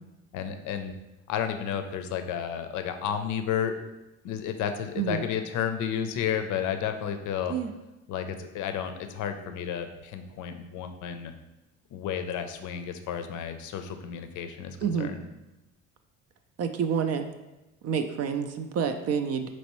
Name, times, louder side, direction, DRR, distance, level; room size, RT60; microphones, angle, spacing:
voice 1, 0.3-0.9 1.3-3.7 4.2-7.5 8.1-11.3 11.9-15.2, left 8 dB, 65° left, 8 dB, 0.5 m, -32 dB
voice 2, 14.8-15.1 16.6-17.3 17.8-19.5, right 7 dB, 50° right, 7 dB, 0.4 m, -28 dB
4.3 x 3.0 x 3.0 m, 1.0 s
supercardioid pair, 75°, 33 cm